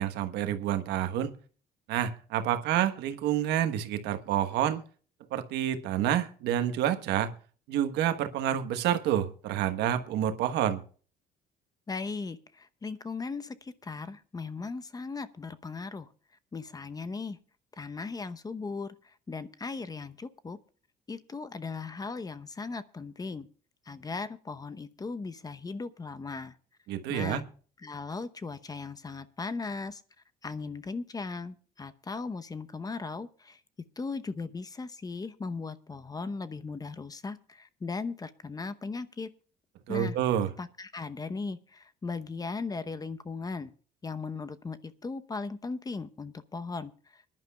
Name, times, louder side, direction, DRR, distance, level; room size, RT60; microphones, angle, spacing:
voice 1, 0.0-1.3 1.9-4.8 5.3-7.3 7.7-10.8 26.9-27.4 39.9-40.5, right 11 dB, 85° right, 1.3 m, -28 dB
voice 2, 11.9-16.1 16.5-17.4 17.8-20.6 21.1-23.5 23.9-26.6 27.1-27.4 27.8-30.0 30.4-33.6 34.0-39.3 39.9-40.2 40.6-43.7 44.0-47.3, left 4 dB, 20° left, 0.8 m, -37 dB
25.0 x 11.0 x 2.3 m
cardioid pair, 110°, 17 cm